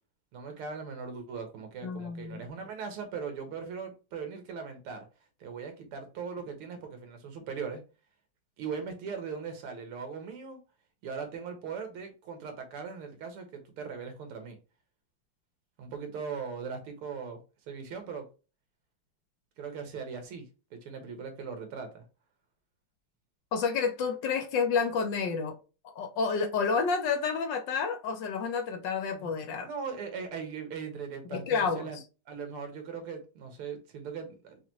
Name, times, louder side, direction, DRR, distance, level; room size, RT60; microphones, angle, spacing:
voice 1, 0.3-5.1 5.4-7.8 8.6-10.6 11.0-14.6 15.8-17.4 17.7-18.3 19.6-20.5 20.7-22.0 29.1-29.3 29.6-32.0 32.3-34.6, right 5 dB, 90° right, 2.1 m, -39 dB
voice 2, 1.8-2.5 23.5-25.5 25.8-29.7 31.3-31.9, left 5 dB, 65° left, 1.2 m, -30 dB
5.7 x 2.7 x 2.9 m
omnidirectional pair, 2.4 m